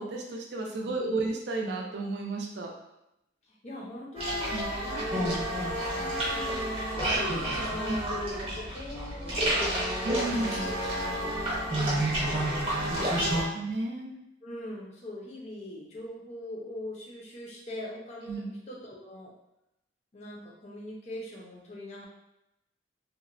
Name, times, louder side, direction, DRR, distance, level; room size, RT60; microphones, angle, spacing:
voice 1, 0.0-2.7 4.5-4.6 7.9-8.0 10.0-10.7 12.8-13.1 13.5-14.1 18.3-18.5, right 2 dB, 60° right, 1 dB, 0.4 m, -33 dB
voice 2, 0.7-1.2 3.5-9.8 10.1-13.5 14.4-19.3 20.1-22.1, left 1 dB, 35° left, -3 dB, 0.5 m, -41 dB
sound 1, 4.2-13.4, right 1 dB, 30° right, 0.7 m, -30 dB
2.8 x 2.1 x 2.4 m, 0.86 s
head